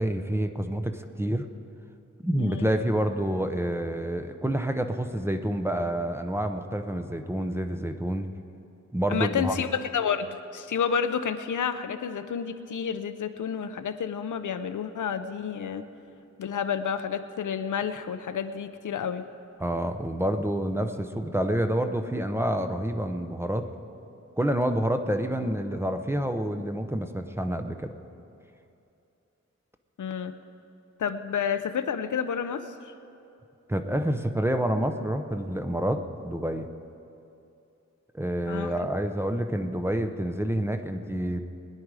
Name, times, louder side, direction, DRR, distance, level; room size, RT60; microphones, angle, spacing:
voice 1, 0.0-1.5 2.2-8.3 8.9-9.5 19.6-23.7 24.4-27.9 33.7-36.7 38.1-41.4, right 1 dB, 10° right, 7 dB, 0.7 m, -28 dB
voice 2, 9.1-15.9 16.4-19.3 30.0-30.4 31.0-32.9 38.5-38.8, left 7 dB, 90° left, 10 dB, 0.7 m, -30 dB
21.0 x 10.5 x 4.8 m, 2.7 s
wide cardioid pair, 125°, 30 cm